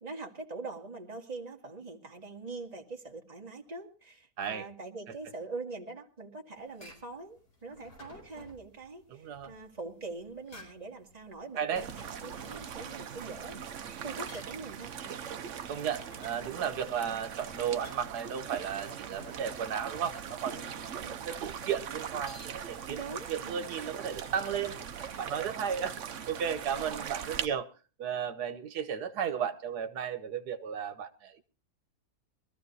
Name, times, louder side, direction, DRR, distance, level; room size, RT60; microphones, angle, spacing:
voice 1, 0.0-15.1 21.0-21.2 22.9-23.6 26.7-26.9, right 3 dB, 25° right, 2.0 m, -43 dB
sound 1, 6.5-25.9, left 2 dB, 75° left, 5.2 m, -56 dB
voice 2, 9.2-9.5 11.6-11.8 15.7-23.0 23.3-24.8 25.2-27.7 28.0-31.4, right 8 dB, 85° right, 1.5 m, -34 dB
sound 2, 11.8-27.5, right 8 dB, 55° right, 1.1 m, -41 dB
23.0 x 14.0 x 2.8 m
omnidirectional pair, 1.7 m